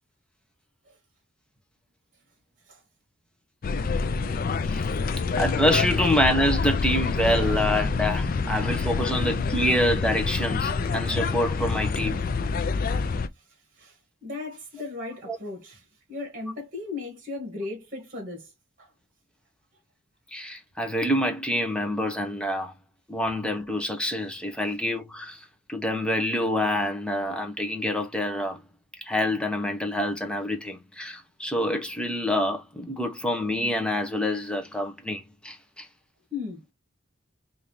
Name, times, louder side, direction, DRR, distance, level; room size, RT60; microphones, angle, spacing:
sound 1, 3.6-13.3, left 4 dB, 45° left, 0.4 m, -27 dB
voice 1, 5.4-12.2 15.3-15.4 20.3-22.7 23.1-28.6 29.0-35.9, left 1 dB, 5° left, 0.8 m, -26 dB
voice 2, 11.7-12.2 13.8-13.9 14.2-15.8 16.1-18.5 18.8-18.9 36.3-36.7, left 3 dB, 45° right, 1.6 m, -37 dB
3.7 x 2.7 x 3.1 m
head